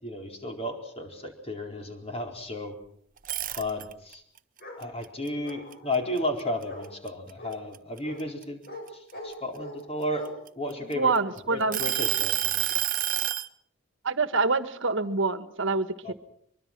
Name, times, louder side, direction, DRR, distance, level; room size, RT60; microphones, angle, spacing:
voice 1, 0.0-2.8 3.6-4.2 4.8-8.6 8.9-10.3 10.5-11.1 11.5-12.7 16.0-16.1, left 1 dB, 30° left, 3 dB, 4.4 m, -33 dB
sound 1, 3.2-4.1 4.6-6.4 6.8-7.1 7.5-9.3 10.0-11.2 11.7-13.5, right 13 dB, 40° right, 0.8 m, -28 dB
Bark, 4.6-4.8 5.4-6.0 6.7-6.9 7.4-7.5 8.0-8.2 8.7-8.8 9.1-9.8 10.1-10.3, left 1 dB, 45° left, 7.2 m, -41 dB
voice 2, 10.8-12.0 14.0-16.1, right 3 dB, 65° right, 12 dB, 1.5 m, -26 dB
24.0 x 23.5 x 6.1 m, 0.66 s
head